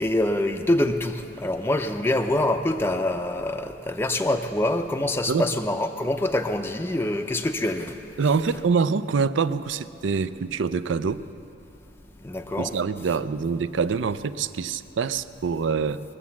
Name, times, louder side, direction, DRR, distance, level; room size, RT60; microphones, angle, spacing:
voice 1, 0.0-8.0 12.2-12.7, left 1 dB, 10° left, 4 dB, 0.5 m, -25 dB
voice 2, 8.2-11.2 12.6-16.0, right 5 dB, 75° right, 14 dB, 0.4 m, -25 dB
22.0 x 7.5 x 7.1 m, 2.8 s
head